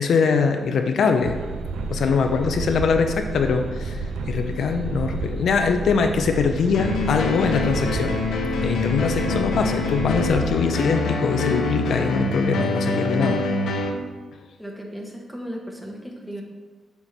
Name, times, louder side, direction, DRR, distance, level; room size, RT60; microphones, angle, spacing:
voice 1, 0.0-1.4 1.9-4.0 4.3-8.2 8.6-13.4, left 5 dB, 60° left, 5 dB, 0.6 m, -22 dB
sound 1, 1.2-10.6, right 3 dB, 85° right, 0.7 m, -31 dB
sound 2, 6.7-13.9, left 3 dB, 90° left, 1.1 m, -25 dB
voice 2, 14.6-16.4, equal, 5° right, 0 dB, 1.0 m, -35 dB
7.1 x 4.5 x 6.6 m, 1.3 s
wide cardioid pair, 180°, 0 cm